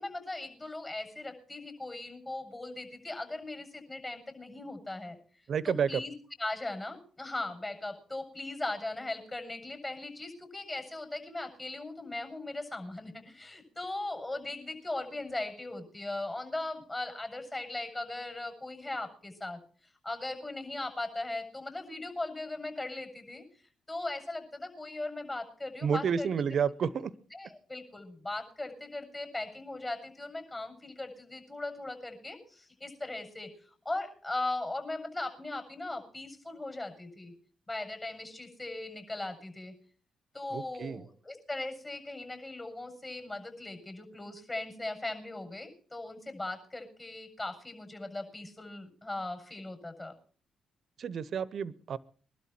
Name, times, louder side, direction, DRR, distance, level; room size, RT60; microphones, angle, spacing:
voice 1, 0.0-5.2 5.6-6.1 6.4-19.6 20.0-23.4 23.9-26.3 27.3-33.5 33.8-37.3 37.7-39.7 40.3-50.1, left 2 dB, 30° left, 6 dB, 7.5 m, -38 dB
voice 2, 5.5-6.0 25.8-27.1 40.5-41.1 51.0-52.0, right 7 dB, 60° right, 18 dB, 1.0 m, -30 dB
22.5 x 12.5 x 4.5 m, 0.43 s
hypercardioid pair, 45°, 0 cm